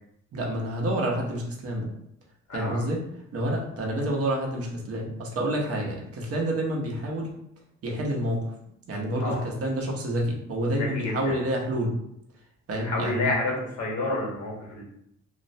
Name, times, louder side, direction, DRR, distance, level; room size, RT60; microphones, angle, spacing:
voice 1, 0.3-1.9 2.5-3.0 3.3-7.3 7.8-8.4 8.9-11.9 12.7-13.3, right 1 dB, 50° right, -1 dB, 0.7 m, -28 dB
voice 2, 2.5-2.8 9.2-9.4 10.8-11.3 12.8-14.8, left 2 dB, 70° left, -3 dB, 1.0 m, -29 dB
2.4 x 2.0 x 2.6 m, 0.75 s
cardioid pair, 90°, 30 cm